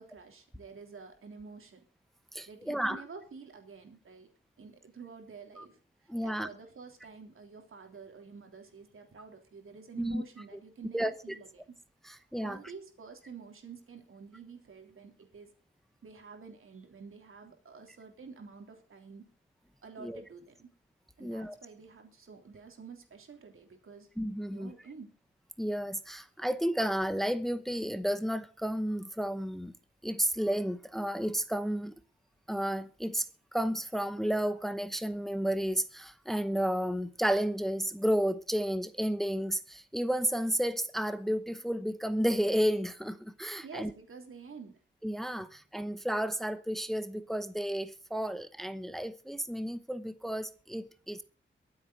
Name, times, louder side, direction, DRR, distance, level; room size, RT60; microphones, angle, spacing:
voice 1, 0.0-1.8 2.5-4.3 4.6-11.6 12.4-15.5 16.0-19.2 19.8-20.7 21.2-24.1 24.5-25.1 43.6-44.8 45.4-45.5, right 5 dB, 90° right, 3.4 m, -49 dB
voice 2, 2.3-3.0 5.6-5.7 6.1-6.5 10.0-10.2 10.9-11.1 12.0-12.6 20.0-20.2 21.2-21.5 24.2-24.7 25.6-29.7 30.0-31.9 32.5-33.3 33.5-43.9 45.0-51.2, equal, ahead, 0.8 m, -32 dB
23.0 x 8.0 x 4.0 m
wide cardioid pair, 165°, 21 cm